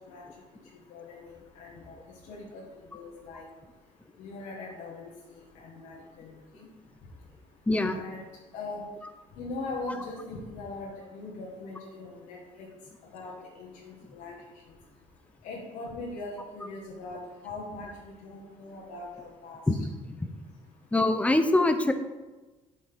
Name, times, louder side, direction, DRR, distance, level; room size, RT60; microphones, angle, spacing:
voice 1, 0.9-1.3 1.6-1.9 2.3-2.6 2.9-3.4 4.2-5.1 5.6-6.3 7.9-8.2 8.5-8.9 9.4-12.4 13.1-14.4 15.4-17.2 17.4-17.9 18.2-19.6, left 3 dB, 90° left, -3 dB, 1.1 m, -40 dB
voice 2, 7.7-8.0 19.7-19.8 20.1-20.2 20.9-21.9, left 2 dB, 10° left, 8 dB, 0.5 m, -23 dB
7.7 x 4.2 x 3.5 m, 1.2 s
cardioid pair, 100°, 14 cm